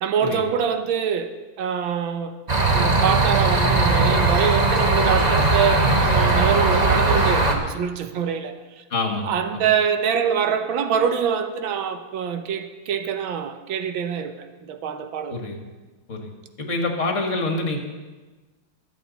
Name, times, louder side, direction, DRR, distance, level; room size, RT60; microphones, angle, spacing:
voice 1, 0.0-2.3 2.7-8.8 9.2-15.5, right 7 dB, 75° right, 1.6 m, -25 dB
sound 1, 2.5-7.6, right 2 dB, 25° right, 0.9 m, -19 dB
voice 2, 8.9-9.6 15.3-15.6 16.1-16.3 16.6-17.8, left 2 dB, 40° left, 1.9 m, -26 dB
21.5 x 8.2 x 4.1 m
omnidirectional pair, 2.2 m